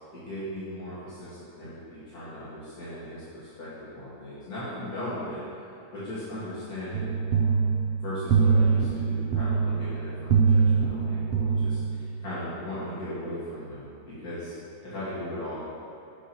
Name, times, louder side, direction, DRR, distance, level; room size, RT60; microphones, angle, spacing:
voice 1, 0.1-7.6 8.0-14.6 14.8-15.6, left 1 dB, 80° left, -12 dB, 2.2 m, -38 dB
sound 1, 6.9-12.2, right 5 dB, 65° right, 0.6 m, -24 dB
8.3 x 6.0 x 2.8 m, 2.8 s
omnidirectional pair, 1.6 m